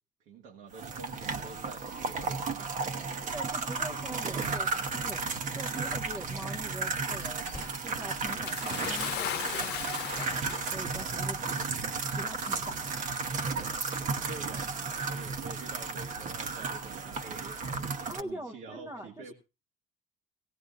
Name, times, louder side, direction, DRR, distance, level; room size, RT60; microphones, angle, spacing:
voice 1, 0.2-3.2 3.9-4.9 13.6-19.3, right 4 dB, 85° right, 1 dB, 1.6 m, -48 dB
sound 1, 0.7-18.2, right 4 dB, 50° right, 1.0 m, -34 dB
voice 2, 3.3-11.4 12.2-12.8 18.1-19.3, right 1 dB, 20° right, 3 dB, 0.8 m, -43 dB
sound 2, 7.4-8.7 9.5-10.7 11.0-11.4 11.7-11.9, left 2 dB, 15° left, 1.4 m, -52 dB
Bathtub (filling or washing) / Splash splatter, 8.4-11.0 12.0-12.1 13.1-13.2, left 11 dB, 80° left, 0.9 m, -36 dB
17.0 x 17.0 x 2.6 m, 0.29 s
cardioid pair, 110°, 17 cm